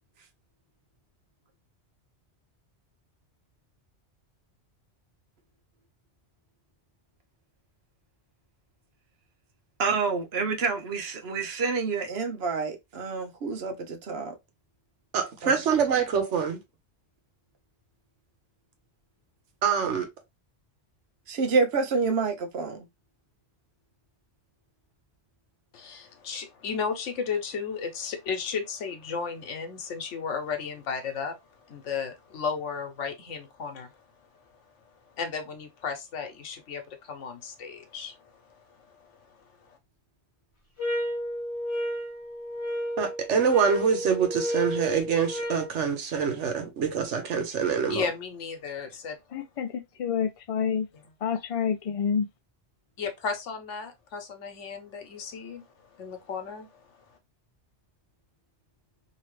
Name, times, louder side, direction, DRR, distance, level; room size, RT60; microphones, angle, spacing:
voice 1, 9.8-14.3 15.4-15.6 21.3-22.9, right 4 dB, 65° right, 0.9 m, -28 dB
voice 2, 15.1-16.6 19.6-20.1 43.0-48.1, right 6 dB, 80° right, 1.2 m, -25 dB
voice 3, 25.7-31.4 31.7-33.9 35.2-39.3 39.6-39.8 47.9-49.2 53.0-55.6 56.0-56.9, left 5 dB, 85° left, 1.1 m, -34 dB
sound 1, 40.8-45.7, equal, 30° left, 1.0 m, -32 dB
voice 4, 49.3-50.9 51.2-52.3, left 7 dB, 50° left, 0.4 m, -28 dB
2.9 x 2.8 x 3.1 m
omnidirectional pair, 1.2 m